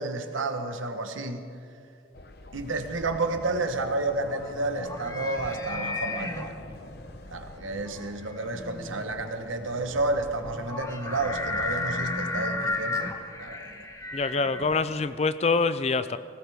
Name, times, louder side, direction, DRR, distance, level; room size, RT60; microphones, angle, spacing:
voice 1, 0.0-1.4 2.5-6.6 7.3-13.9, right 2 dB, 85° right, 6 dB, 1.2 m, -31 dB
sound 1, 2.1-11.9, left 2 dB, 50° left, 0.9 m, -47 dB
sound 2, 3.7-15.2, left 2 dB, 15° left, 0.8 m, -34 dB
voice 2, 14.1-16.2, left 4 dB, 30° left, 13 dB, 0.4 m, -25 dB
19.5 x 17.0 x 3.6 m, 2.5 s
head